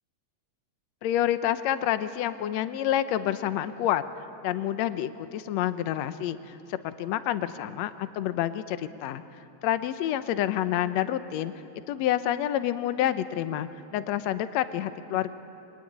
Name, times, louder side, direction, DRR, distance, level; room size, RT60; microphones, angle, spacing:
voice 1, 1.0-4.0 4.4-9.2 9.6-11.5 11.9-15.3, left 12 dB, 75° left, 11 dB, 2.0 m, -28 dB
25.5 x 23.5 x 9.8 m, 2.9 s
omnidirectional pair, 3.3 m